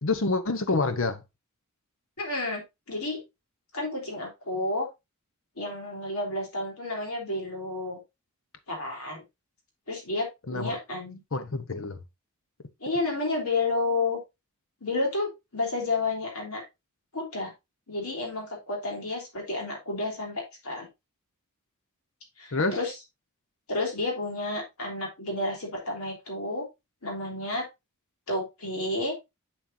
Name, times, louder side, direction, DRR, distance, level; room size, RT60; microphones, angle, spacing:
voice 1, 0.0-1.2 10.5-10.8 11.3-12.0 22.5-22.8, left 3 dB, 60° left, 0.9 m, -27 dB
voice 2, 2.2-3.2 3.7-4.9 5.6-8.0 8.7-9.2 9.9-11.2 12.8-14.2 14.8-16.6 17.1-17.5 17.9-20.9 22.4-23.0 23.7-26.7 27.0-27.7 28.3-29.1, left 2 dB, 80° left, 3.5 m, -31 dB
7.9 x 7.4 x 2.6 m
head